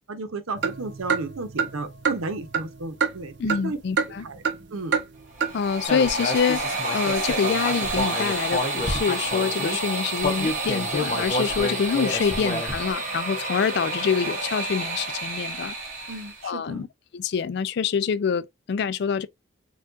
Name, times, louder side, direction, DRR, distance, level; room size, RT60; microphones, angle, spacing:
voice 1, 0.1-3.8 4.2-4.4 4.7-5.0 16.1-16.9, right 3 dB, 85° right, 0.8 m, -33 dB
sound 1, 0.6-3.7 4.0-4.6 4.9-5.1 5.4-5.5, right 6 dB, 55° right, 0.6 m, -27 dB
voice 2, 3.4-4.3 5.5-15.7 16.4-16.9 17.1-19.3, left 6 dB, 50° left, 0.3 m, -26 dB
sound 2, 5.3-16.4, right 2 dB, 35° right, 1.3 m, -30 dB
Human voice, 5.9-9.8 10.2-12.9, left 1 dB, 35° left, 0.8 m, -29 dB
4.4 x 2.4 x 2.5 m
head